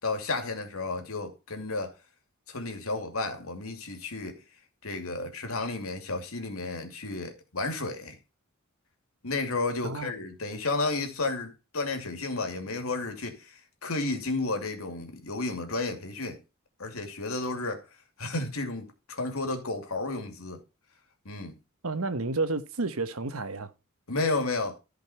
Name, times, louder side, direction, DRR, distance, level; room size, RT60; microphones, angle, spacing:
voice 1, 0.0-1.9 2.5-4.4 4.8-8.2 9.2-16.4 16.8-17.8 18.2-20.6 21.2-21.6 24.1-24.8, left 3 dB, 80° left, 2.6 m, -32 dB
voice 2, 9.8-10.2 21.8-23.7, right 3 dB, 85° right, 1.2 m, -31 dB
14.5 x 5.3 x 4.3 m
head